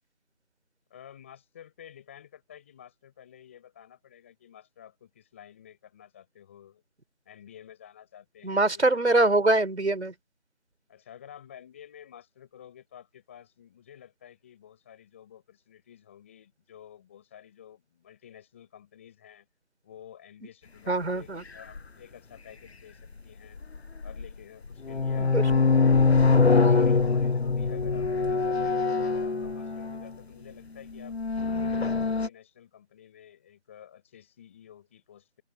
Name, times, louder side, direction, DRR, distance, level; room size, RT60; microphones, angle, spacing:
voice 1, 0.9-6.8 7.3-9.0 10.9-19.5 19.8-23.7 24.0-31.2 31.5-35.4, left 9 dB, 10° left, 7.3 m, -51 dB
voice 2, 8.4-10.1 20.9-21.4 25.2-25.4, right 2 dB, 75° right, 5.0 m, -23 dB
sound 1, 21.8-21.9 23.6-24.3 24.7-30.1 30.9-32.3, left 4 dB, 65° left, 1.1 m, -23 dB
open air
figure-of-eight pair, 180°, 34 cm